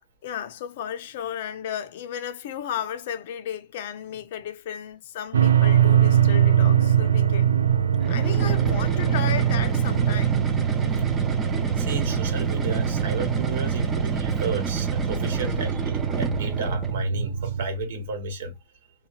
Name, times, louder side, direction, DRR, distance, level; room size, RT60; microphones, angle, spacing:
voice 1, 0.2-7.5 8.1-10.4, left 9 dB, 55° left, 0.4 m, -34 dB
sound 1, 5.3-17.7, right 9 dB, 85° right, 0.4 m, -22 dB
voice 2, 7.7-8.0 11.8-18.5, right 2 dB, 65° right, 1.1 m, -32 dB
sound 2, 7.9-17.0, right 4 dB, 15° right, 0.5 m, -31 dB
2.8 x 2.2 x 2.2 m
hypercardioid pair, 145°, 0 cm